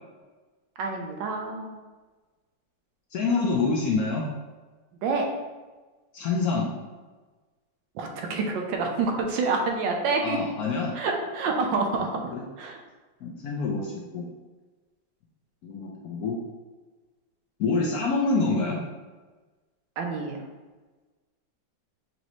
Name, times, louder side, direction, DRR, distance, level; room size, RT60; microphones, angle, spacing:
voice 1, 0.8-1.8 5.0-5.3 7.9-10.4 10.9-12.8 20.0-20.4, right 4 dB, 75° right, 2 dB, 1.3 m, -28 dB
voice 2, 3.1-4.2 6.1-6.7 10.2-11.0 12.3-12.4 13.2-14.3 15.6-16.4 17.6-18.8, left 3 dB, 70° left, -2 dB, 1.0 m, -26 dB
6.2 x 2.7 x 3.0 m, 1.3 s
omnidirectional pair, 2.1 m